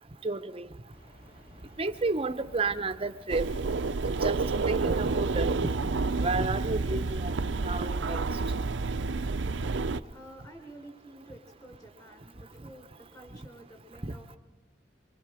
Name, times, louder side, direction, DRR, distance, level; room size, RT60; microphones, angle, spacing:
voice 1, 0.2-0.7 1.8-3.5 4.2-4.4 4.7-5.5 6.2-7.3 7.6-8.2 14.1-14.2, right 3 dB, 30° right, 10 dB, 0.7 m, -31 dB
sound 1, 0.9-5.9, equal, 50° left, 4.6 m, -53 dB
sound 2, 3.3-10.0, right 3 dB, 75° right, 0.6 m, -29 dB
voice 2, 9.5-14.4, right 1 dB, 20° left, 4 dB, 3.6 m, -51 dB
25.0 x 24.0 x 4.9 m, 1.2 s
head